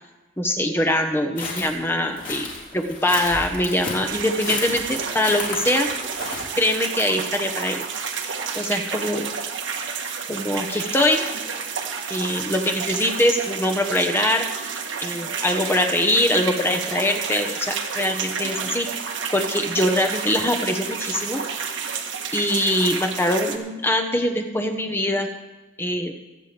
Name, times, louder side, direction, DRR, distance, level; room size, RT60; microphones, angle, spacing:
voice 1, 0.4-2.5 2.7-5.9 6.6-7.8 8.5-9.3 10.3-11.3 12.1-14.5 15.0-18.9 19.3-21.4 22.3-25.3 25.8-26.1, left 1 dB, 10° left, 3 dB, 1.1 m, -23 dB
sound 1, 1.4-6.6, left 3 dB, 40° left, 3.9 m, -33 dB
sound 2, 4.0-23.6, right 6 dB, 75° right, 1.4 m, -30 dB
25.0 x 8.9 x 3.5 m, 1.1 s
head